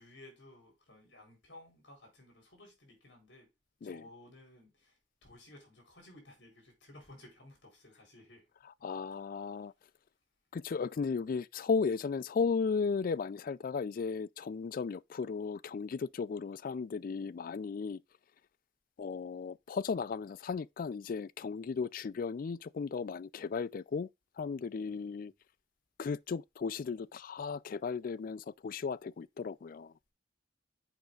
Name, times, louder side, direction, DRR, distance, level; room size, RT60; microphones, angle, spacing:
voice 1, 0.0-3.5 3.8-8.5 24.8-25.3, left 1 dB, 70° left, 4.0 m, -56 dB
voice 2, 8.6-9.7 10.5-18.0 19.0-24.1 24.4-25.3 26.0-29.9, left 5 dB, 50° left, 0.3 m, -35 dB
7.2 x 5.2 x 3.8 m
head